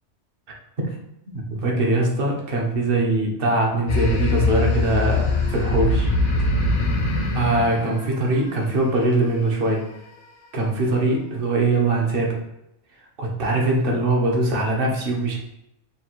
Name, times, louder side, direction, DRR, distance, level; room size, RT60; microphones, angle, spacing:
voice 1, 1.3-6.1 7.3-9.8 10.5-12.4 13.2-15.4, right 2 dB, 55° right, -1 dB, 1.0 m, -22 dB
sound 1, 3.9-8.8, left 2 dB, 85° left, 1.0 m, -22 dB
5.7 x 2.5 x 2.9 m, 0.86 s
omnidirectional pair, 1.2 m